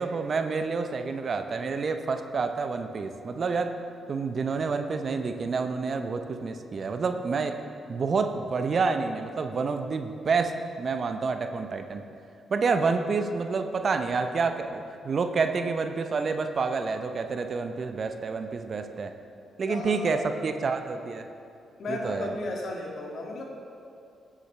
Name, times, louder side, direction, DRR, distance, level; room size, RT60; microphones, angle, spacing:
voice 1, 0.0-3.8 4.1-7.6 7.9-12.0 12.5-19.1 19.6-21.3 21.9-22.3, right 4 dB, 55° right, 7 dB, 0.7 m, -28 dB
voice 2, 19.6-20.3 21.8-23.4, left 2 dB, 60° left, -1 dB, 1.9 m, -34 dB
17.5 x 7.4 x 3.2 m, 2.5 s
hypercardioid pair, 40°, 0 cm